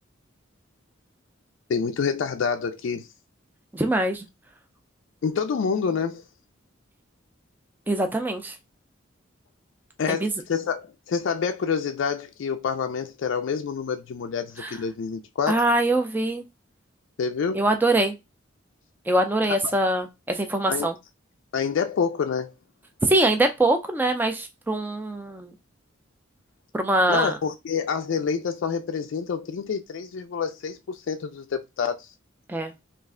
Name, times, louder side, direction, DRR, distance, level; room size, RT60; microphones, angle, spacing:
voice 1, 1.7-3.1 5.2-6.2 10.0-15.6 17.2-17.6 19.5-19.7 20.7-20.9 21.5-22.5 27.1-32.1, left 6 dB, 65° left, 0.3 m, -27 dB
voice 2, 3.7-4.2 7.9-8.5 10.1-10.3 14.6-14.8 15.5-16.4 17.5-18.2 19.1-21.0 23.0-25.5 26.7-27.4 32.5-32.7, right 1 dB, 10° right, 0.4 m, -23 dB
3.1 x 2.5 x 3.6 m
head